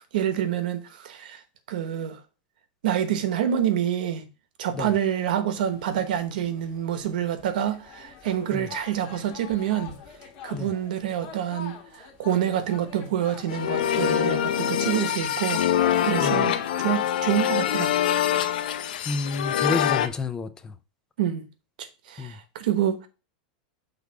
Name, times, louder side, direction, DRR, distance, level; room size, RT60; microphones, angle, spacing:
voice 1, 0.1-1.4 1.7-2.2 2.8-4.2 4.6-9.9 10.4-15.6 16.0-17.9 21.2-21.4 21.8-23.1, right 10 dB, 75° right, 1.0 m, -27 dB
sound 1, 5.6-14.5, left 7 dB, 40° left, 1.4 m, -46 dB
sound 2, 13.5-20.1, left 10 dB, 80° left, 0.7 m, -24 dB
voice 2, 19.1-20.7 22.2-22.3, left 3 dB, 15° left, 0.4 m, -29 dB
6.4 x 3.6 x 4.7 m
supercardioid pair, 165°, 5 cm